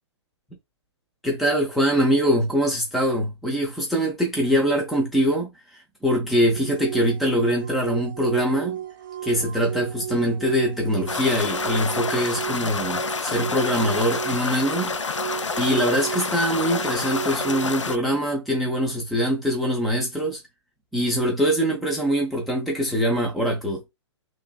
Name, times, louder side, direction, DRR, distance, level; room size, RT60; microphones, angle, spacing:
voice 1, 1.2-8.8 9.2-15.0 15.6-20.4 20.9-23.8, equal, ahead, 0.4 m, -23 dB
sound 1, 6.5-17.8, right 11 dB, 40° right, 0.6 m, -34 dB
sound 2, 11.1-18.0, left 5 dB, 80° left, 0.4 m, -28 dB
3.0 x 2.5 x 2.3 m
figure-of-eight pair, 120°, 15 cm